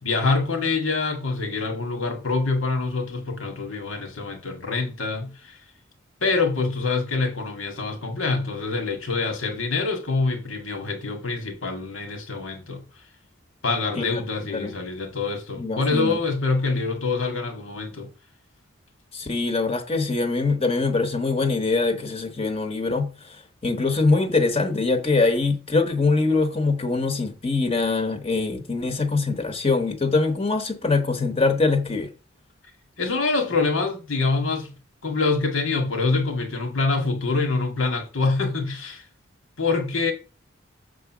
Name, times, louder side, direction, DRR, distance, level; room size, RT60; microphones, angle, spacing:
voice 1, 0.0-5.6 6.2-12.8 13.6-18.1 33.0-34.7 35.0-39.0 39.6-40.1, left 3 dB, 90° left, 2.0 m, -25 dB
voice 2, 15.6-16.2 19.1-32.1, left 3 dB, 30° left, 1.0 m, -23 dB
6.7 x 3.8 x 6.0 m
head